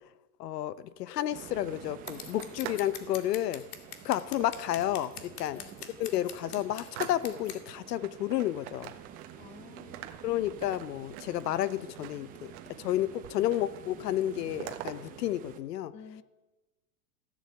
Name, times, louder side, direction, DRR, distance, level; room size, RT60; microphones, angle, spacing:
voice 1, 0.4-3.6 4.0-5.6 6.0-8.9 10.2-12.5 12.8-15.9, left 13 dB, 85° left, 17 dB, 1.0 m, -31 dB
sound 1, 1.0-2.9 3.2-3.6 4.4-5.2 5.7-5.8 6.1-7.6 8.0-9.5 9.8-12.9 13.2-13.8 14.1-15.0, right 13 dB, 40° right, 1.5 m, -45 dB
sound 2, 1.3-15.6, right 9 dB, 20° right, 0.8 m, -49 dB
Scissors, 2.1-7.6, left 9 dB, 65° left, 2.2 m, -44 dB
voice 2, 9.4-10.2 15.9-16.2, left 6 dB, 15° left, 11 dB, 0.8 m, -51 dB
15.0 x 11.5 x 8.2 m, 1.1 s
supercardioid pair, 165°, 47 cm